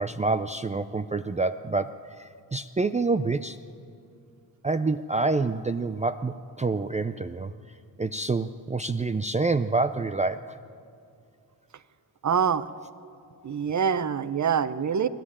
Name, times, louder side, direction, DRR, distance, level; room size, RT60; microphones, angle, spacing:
voice 1, 0.0-1.9 2.5-3.6 4.6-7.5 8.0-10.6, right 3 dB, 15° right, 10 dB, 0.5 m, -27 dB
voice 2, 12.2-12.6 13.4-15.1, right 7 dB, 45° right, 15 dB, 0.8 m, -25 dB
25.0 x 11.5 x 9.9 m, 2.4 s
cardioid pair, 75°, 41 cm